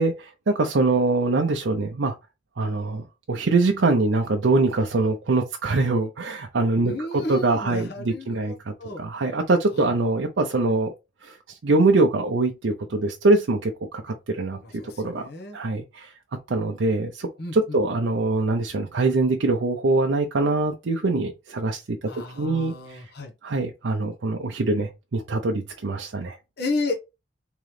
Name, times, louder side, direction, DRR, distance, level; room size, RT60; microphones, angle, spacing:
voice 1, 0.0-2.2 2.6-10.9 11.2-16.1 16.5-22.0 22.4-23.1 23.4-26.4, right 3 dB, 70° right, 0.5 m, -23 dB
voice 2, 6.8-9.0 9.7-9.9 14.6-15.6 17.4-17.8 22.0-23.3 26.6-26.9, left 2 dB, 55° left, 0.9 m, -32 dB
3.7 x 3.0 x 3.2 m
head